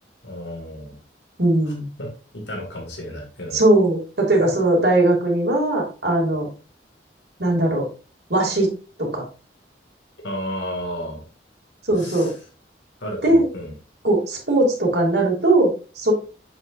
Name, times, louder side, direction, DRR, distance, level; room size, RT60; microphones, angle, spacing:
voice 1, 0.2-1.0 2.0-3.6 10.2-11.2 12.0-12.4 13.0-13.7, equal, 85° left, 1 dB, 2.2 m, -32 dB
voice 2, 1.4-1.9 3.5-6.5 7.4-7.8 8.3-8.7 9.0-9.2 11.9-12.3 13.2-13.5 14.0-16.1, right 2 dB, 65° right, -2 dB, 2.6 m, -19 dB
6.9 x 6.2 x 2.6 m, 0.36 s
head